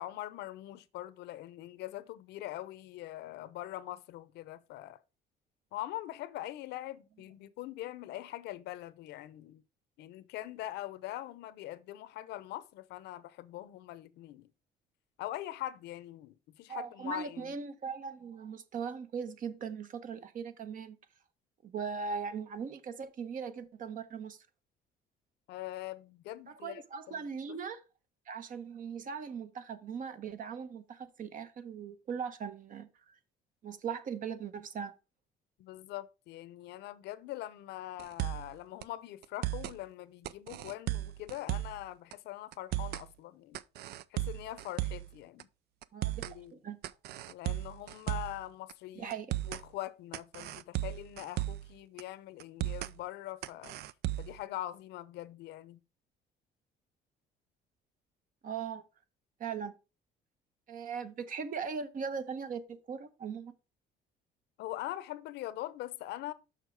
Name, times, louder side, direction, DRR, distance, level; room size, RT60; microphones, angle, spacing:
voice 1, 0.0-5.0 5.7-9.6 10.0-14.5 15.2-17.5 25.5-27.6 35.6-43.6 44.1-45.5 46.3-46.6 47.3-49.1 49.4-53.8 54.2-55.8 64.6-66.3, left 15 dB, 80° left, 0.7 m, -42 dB
voice 2, 16.7-21.0 21.6-24.4 26.5-27.8 28.3-32.9 33.6-34.9 45.9-46.2 46.5-46.8 48.9-49.4 58.4-58.8 59.4-59.7 60.7-62.6 62.9-63.5, right 6 dB, 50° right, 1.1 m, -39 dB
sound 1, 38.0-38.5 38.8-38.9 39.2-39.8 40.3-41.8 42.1-42.2 42.5-43.1 43.5-45.1 45.4-45.5 45.8-46.4 46.8-48.4 48.7-48.8 49.1-49.6 50.1-51.7 52.0-52.1 52.4-52.9 53.4-54.4, right 15 dB, 75° right, 0.5 m, -35 dB
6.6 x 6.1 x 4.6 m
cardioid pair, 110°, 17 cm